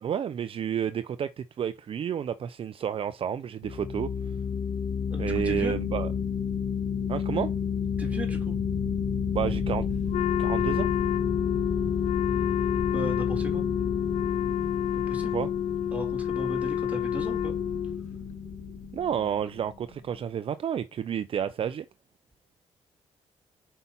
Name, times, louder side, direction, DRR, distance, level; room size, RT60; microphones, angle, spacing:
voice 1, 0.0-4.1 5.2-6.1 7.1-7.5 9.3-9.9 10.4-10.9 15.3-15.5 18.9-21.9, right 9 dB, 55° right, 0.5 m, -30 dB
sound 1, 3.6-19.9, left 7 dB, 45° left, 2.9 m, -31 dB
voice 2, 5.1-5.8 8.0-8.6 12.8-13.7 15.1-15.4 15.9-17.6, right 1 dB, 10° right, 3.5 m, -36 dB
Wind instrument woodwind instrument, 10.1-18.0, left 10 dB, 75° left, 0.4 m, -29 dB
5.6 x 5.4 x 4.2 m
cardioid pair, 90°, 12 cm